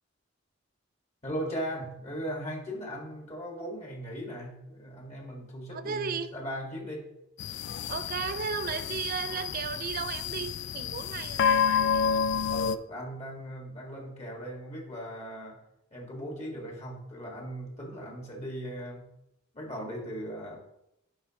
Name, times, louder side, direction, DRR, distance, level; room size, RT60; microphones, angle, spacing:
voice 1, 1.2-7.1 12.5-15.6 15.9-19.1 19.5-20.5, equal, 35° left, -1 dB, 1.7 m, -38 dB
voice 2, 5.7-6.3 7.9-12.3, right 6 dB, 45° right, 11 dB, 0.4 m, -35 dB
sound 1, 7.4-12.8, left 7 dB, 60° left, 0.3 m, -29 dB
11.0 x 4.5 x 2.9 m, 0.83 s
head